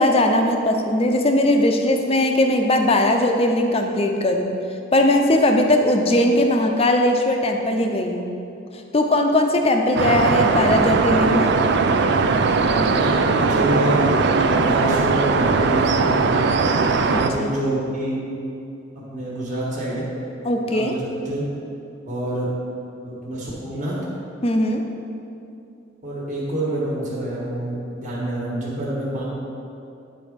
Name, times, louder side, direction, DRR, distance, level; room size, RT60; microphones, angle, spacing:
voice 1, 0.0-4.5 4.9-8.3 8.9-11.5 17.4-17.5 20.4-20.9 24.4-24.8, left 1 dB, 30° left, 4 dB, 0.6 m, -19 dB
sound 1, 10.0-17.3, right 4 dB, 60° right, 0.4 m, -19 dB
voice 2, 12.8-16.2 17.0-18.3 18.9-20.1 20.6-21.5 22.1-22.6 23.0-24.1 26.0-29.2, right 1 dB, 40° right, -6 dB, 1.5 m, -27 dB
9.8 x 4.1 x 5.1 m, 2.6 s
head